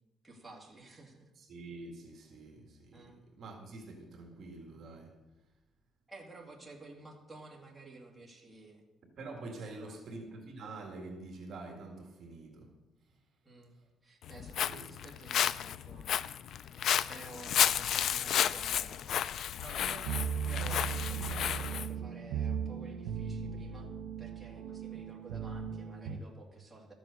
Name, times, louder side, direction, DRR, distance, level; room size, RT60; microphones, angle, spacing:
voice 1, 0.2-1.3 2.9-3.2 6.1-8.8 9.8-10.0 13.4-13.8 14.0-16.1 17.1-19.0 19.6-20.1 20.4-23.9 24.2-26.9, right 2 dB, 5° right, 2.3 m, -52 dB
voice 2, 1.4-5.2 9.2-12.8 13.1-13.2 13.7-13.9 14.7-15.0, right 2 dB, 45° right, 2.0 m, -47 dB
Walk footsteps, 14.2-21.9, left 9 dB, 60° left, 0.4 m, -32 dB
sound 1, 19.8-26.2, right 7 dB, 85° right, 1.0 m, -37 dB
13.5 x 7.8 x 6.5 m
cardioid pair, 145°, 0 cm